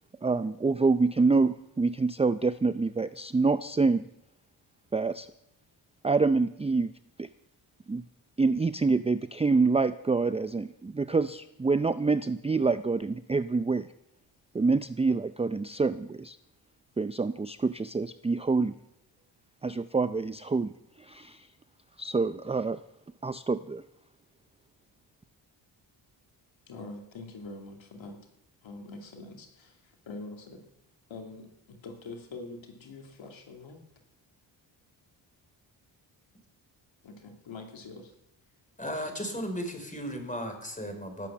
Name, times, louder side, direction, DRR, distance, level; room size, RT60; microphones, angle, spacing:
voice 1, 0.2-4.0 4.9-5.3 6.0-6.9 7.2-7.3 7.9-8.0 8.4-13.9 14.5-16.4 17.0-18.7 19.6-20.7 21.0-21.5 22.0-22.8 23.2-23.8, right 4 dB, 15° right, 13 dB, 0.5 m, -26 dB
voice 2, 26.7-28.2 28.6-30.6 31.1-33.8 37.0-38.1, left 3 dB, 65° left, 3 dB, 2.6 m, -44 dB
voice 3, 38.8-41.3, equal, 15° left, 5 dB, 5.0 m, -35 dB
18.0 x 8.4 x 7.3 m, 0.82 s
supercardioid pair, 55°, 49 cm